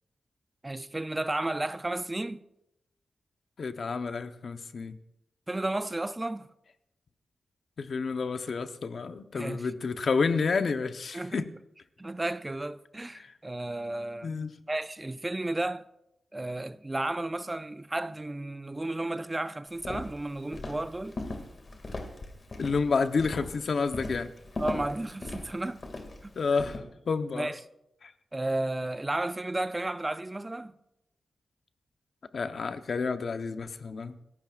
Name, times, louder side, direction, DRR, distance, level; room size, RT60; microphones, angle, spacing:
voice 1, 0.6-2.4 5.5-6.5 9.3-9.7 11.1-11.4 12.0-14.3 14.7-15.9 16.3-21.2 24.6-25.8 26.2-26.3 27.3-27.6 28.3-30.7, right 2 dB, 20° right, 0.4 m, -33 dB
voice 2, 3.6-5.0 7.8-11.5 13.1-13.3 14.2-14.5 22.6-24.3 26.4-26.8 27.1-27.5 28.0-28.1 32.3-34.2, left 4 dB, 60° left, 0.9 m, -30 dB
Walk footsteps, 19.7-26.8, left 2 dB, 40° left, 2.2 m, -39 dB
28.0 x 14.5 x 2.5 m
wide cardioid pair, 105°, 0 cm